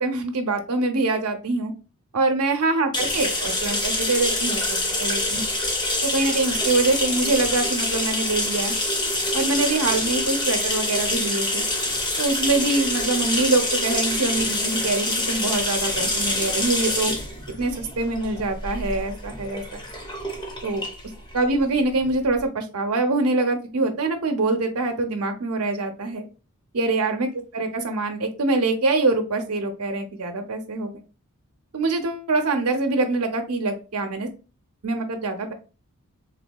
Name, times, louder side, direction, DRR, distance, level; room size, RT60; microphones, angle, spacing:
voice 1, 0.0-1.7 2.1-5.5 6.0-8.8 9.3-11.6 12.2-17.1 17.6-19.8 20.6-20.8 21.3-26.3 26.7-27.3 27.5-30.9 31.7-34.3 34.8-35.5, right 3 dB, 80° right, 5 dB, 0.7 m, -24 dB
sound 1, 2.9-22.4, left 1 dB, 20° left, 0.7 m, -26 dB
3.5 x 2.7 x 2.2 m, 0.33 s
head